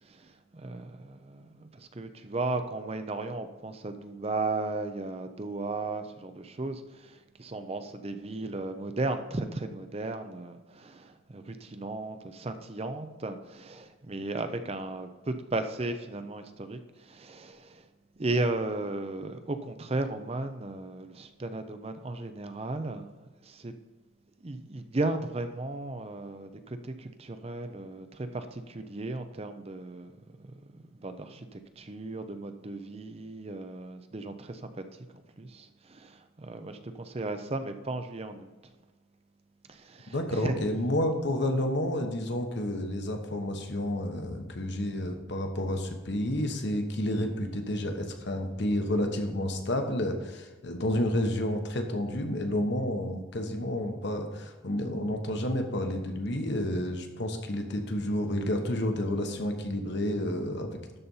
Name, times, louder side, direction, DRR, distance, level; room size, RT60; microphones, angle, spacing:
voice 1, 0.0-17.9 18.2-23.1 23.4-23.7 24.4-34.8 35.1-38.5 39.7-40.5, right 2 dB, 30° right, 8 dB, 0.5 m, -35 dB
voice 2, 40.1-61.0, left 1 dB, 55° left, 5 dB, 1.1 m, -30 dB
12.5 x 4.2 x 5.5 m, 1.2 s
head